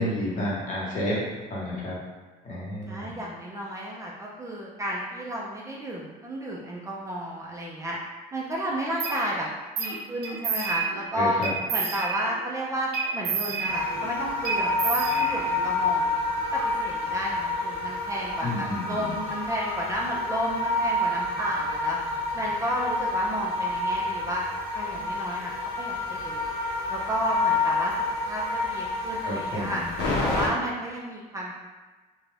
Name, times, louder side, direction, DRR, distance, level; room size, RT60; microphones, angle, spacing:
voice 1, 0.0-2.0 2.4-3.2 11.1-11.5 18.4-19.2 29.2-29.9, left 1 dB, 45° left, -6 dB, 1.1 m, -30 dB
voice 2, 2.9-8.0 8.3-9.5 9.8-11.4 11.7-16.1 16.5-22.0 22.3-24.4 24.7-26.4 26.9-27.9 28.2-29.8 30.2-31.5, equal, 20° right, -4 dB, 0.4 m, -32 dB
sound 1, 9.0-9.2 9.8-10.0 10.2-11.0 11.4-12.4 12.9-14.1 14.5-15.7, right 5 dB, 75° right, 0.6 m, -30 dB
sound 2, 13.3-23.8, left 2 dB, 5° left, 0.8 m, -46 dB
sound 3, 13.7-30.5, left 2 dB, 90° left, 0.7 m, -28 dB
2.5 x 2.2 x 3.2 m, 1.3 s
cardioid pair, 110°, 17 cm